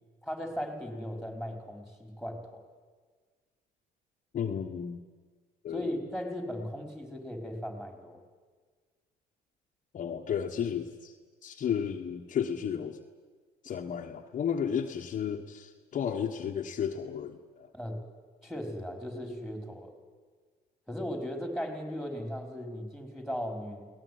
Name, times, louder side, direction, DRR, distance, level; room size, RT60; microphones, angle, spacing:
voice 1, 0.2-2.6 5.7-8.2 17.7-18.0 18.4-19.9 20.9-23.9, equal, ahead, 5 dB, 4.7 m, -37 dB
voice 2, 4.3-5.0 5.6-6.0 9.9-11.1 11.4-13.0 13.6-17.7, left 8 dB, 50° left, 3 dB, 1.4 m, -33 dB
23.0 x 18.5 x 9.5 m, 1.5 s
cardioid pair, 110°, 17 cm